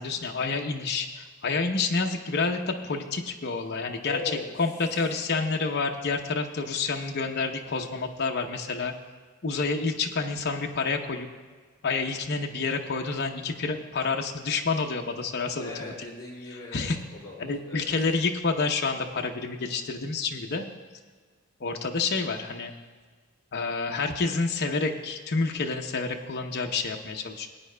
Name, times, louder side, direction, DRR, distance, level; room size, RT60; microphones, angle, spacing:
voice 1, 0.0-4.2 4.6-8.9 9.4-11.3 11.8-15.9 16.7-17.0 17.4-20.7 21.6-22.7 23.5-27.5, left 4 dB, 50° left, 2 dB, 0.7 m, -28 dB
voice 2, 4.0-4.5 15.6-17.9, left 3 dB, 20° left, -6 dB, 3.3 m, -39 dB
21.0 x 9.3 x 2.2 m, 1.5 s
head